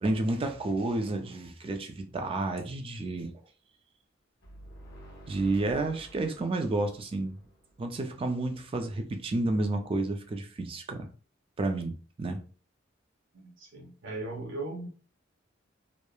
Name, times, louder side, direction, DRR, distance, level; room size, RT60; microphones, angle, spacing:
voice 1, 0.0-3.3 5.3-7.3 7.8-11.1 11.6-12.4, right 2 dB, 30° right, 0.3 m, -30 dB
sound 1, 4.4-8.2, right 1 dB, 55° left, 0.8 m, -50 dB
voice 2, 13.3-14.9, right 2 dB, 65° right, 0.7 m, -38 dB
3.0 x 2.0 x 2.2 m
head